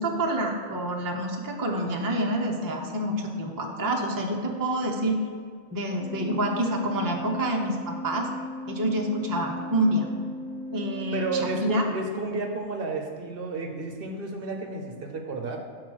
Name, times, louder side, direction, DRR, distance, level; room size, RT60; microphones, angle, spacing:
voice 1, 0.0-5.2 5.7-8.3 8.7-10.1 10.7-11.8, right 1 dB, 20° right, 1 dB, 0.6 m, -27 dB
Organ, 5.9-12.4, left 1 dB, 70° left, 0.9 m, -38 dB
voice 2, 11.1-15.6, right 3 dB, 55° right, 2 dB, 0.9 m, -31 dB
5.9 x 4.6 x 6.3 m, 2.1 s
omnidirectional pair, 1.3 m